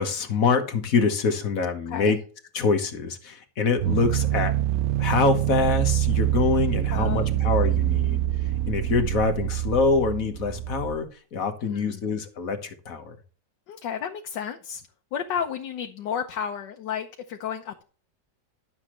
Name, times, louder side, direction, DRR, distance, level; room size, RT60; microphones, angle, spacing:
voice 1, 0.0-2.2 2.5-4.5 5.0-8.2 8.6-13.1, left 4 dB, 55° left, 1.6 m, -25 dB
voice 2, 1.9-2.2 6.9-7.4 11.6-12.0 13.7-14.8 15.1-17.8, left 8 dB, 75° left, 1.5 m, -32 dB
sound 1, 3.8-11.0, right 13 dB, 65° right, 1.1 m, -25 dB
12.0 x 7.3 x 3.1 m
omnidirectional pair, 1.9 m